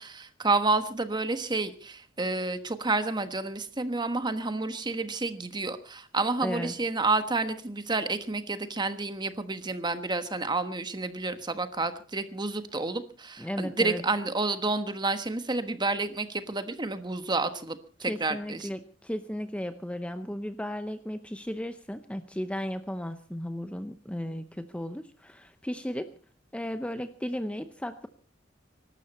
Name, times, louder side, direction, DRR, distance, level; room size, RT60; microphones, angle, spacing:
voice 1, 0.0-18.7, right 3 dB, 25° right, 10 dB, 1.3 m, -30 dB
voice 2, 6.4-6.7 13.4-14.0 18.0-26.2 26.5-28.1, equal, 5° left, 10 dB, 0.7 m, -35 dB
23.5 x 12.5 x 4.2 m, 0.39 s
head